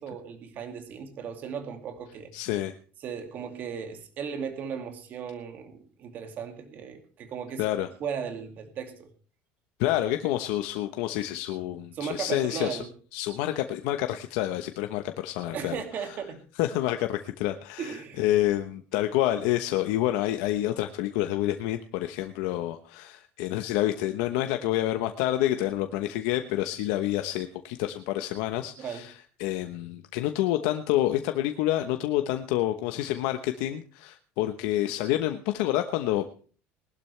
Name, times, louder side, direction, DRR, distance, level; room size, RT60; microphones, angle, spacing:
voice 1, 0.0-2.3 3.0-7.6 8.0-9.1 11.9-12.9 15.5-16.4 17.8-18.3 28.8-29.1, right 7 dB, 40° right, 6 dB, 2.3 m, -36 dB
voice 2, 2.3-2.7 7.6-7.9 9.8-12.8 13.1-16.2 16.6-29.1 29.4-36.2, left 14 dB, 85° left, 7 dB, 1.0 m, -28 dB
20.5 x 12.0 x 3.3 m, 0.40 s
cardioid pair, 160°, 4 cm